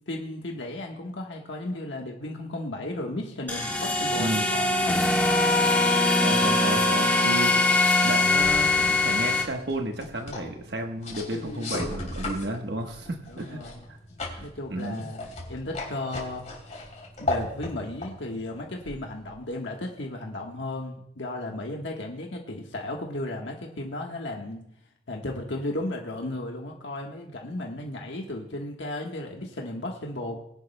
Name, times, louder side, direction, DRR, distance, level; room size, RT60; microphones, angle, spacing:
voice 1, 0.1-4.7 11.3-11.8 13.3-13.8 14.1-16.4 17.2-24.6 25.1-30.4, left 1 dB, 80° left, 0 dB, 1.3 m, -35 dB
sound 1, 3.5-9.4, left 2 dB, 10° left, 1.5 m, -22 dB
voice 2, 4.2-4.5 6.2-13.6 13.9-14.0 14.3-14.4 14.7-15.1, right 1 dB, 60° right, 3 dB, 1.2 m, -32 dB
sound 2, 8.9-19.5, left 2 dB, 40° left, 3.2 m, -37 dB
21.0 x 11.0 x 2.2 m, 0.77 s
head